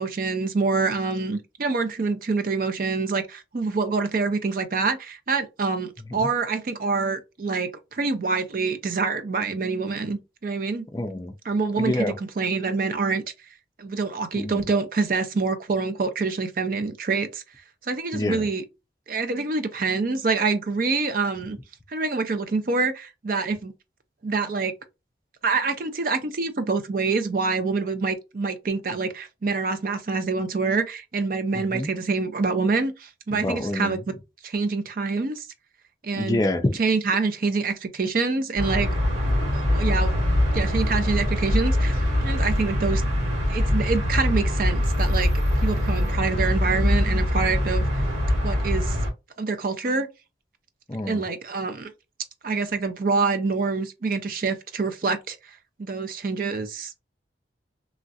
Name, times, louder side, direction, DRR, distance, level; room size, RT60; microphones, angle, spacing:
voice 1, 0.0-10.9 11.5-12.1 12.4-13.2 13.8-17.4 17.8-18.6 19.1-21.6 21.9-23.7 24.2-24.7 25.4-34.0 34.4-35.5 36.0-36.4 36.8-38.9 39.5-40.1 40.5-43.0 43.5-48.0 48.4-49.0 49.4-50.1 51.1-51.9 52.4-56.9, right 4 dB, 50° right, 0.5 m, -26 dB
voice 2, 10.9-11.3 11.8-12.1 14.3-14.6 18.1-18.5 31.5-31.9 33.3-34.0 36.1-36.8 50.9-51.3, left 1 dB, 20° left, 0.4 m, -27 dB
sound 1, 38.6-49.1, left 1 dB, 90° right, 1.9 m, -23 dB
3.1 x 2.4 x 2.6 m
head